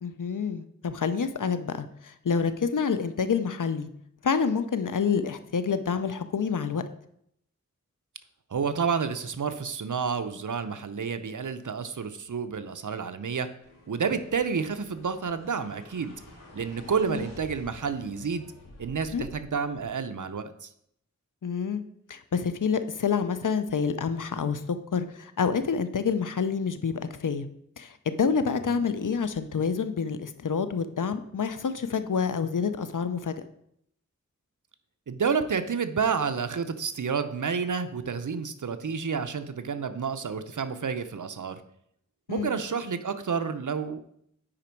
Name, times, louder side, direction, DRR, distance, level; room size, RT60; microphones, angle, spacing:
voice 1, 0.0-3.9 4.2-6.8 17.1-17.2 19.1-19.2 21.4-21.8 22.1-24.6 24.9-27.5 27.8-33.3 42.3-42.6, left 6 dB, 80° left, 11 dB, 0.7 m, -28 dB
voice 2, 8.5-13.5 13.9-16.1 16.5-18.5 18.8-20.7 28.6-28.8 35.1-41.6 42.3-44.0, right 6 dB, 75° right, 9 dB, 0.7 m, -30 dB
sound 1, 13.6-19.9, left 1 dB, 55° left, 3.0 m, -49 dB
8.8 x 5.1 x 4.5 m, 0.71 s
wide cardioid pair, 45°, 31 cm